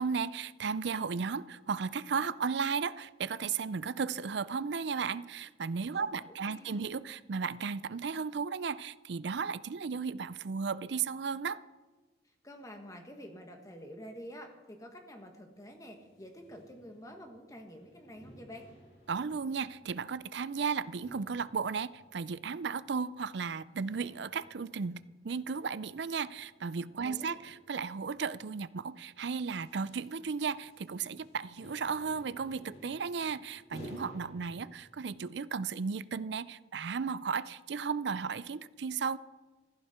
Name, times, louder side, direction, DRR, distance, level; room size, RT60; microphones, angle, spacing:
voice 1, 0.0-11.6 19.1-39.2, right 5 dB, 65° right, 0.5 m, -35 dB
voice 2, 6.2-6.8 12.4-18.7 27.0-27.4, equal, 15° left, 1.6 m, -48 dB
sound 1, 15.5-34.7, equal, 85° left, 4.4 m, -56 dB
15.0 x 14.5 x 4.4 m
head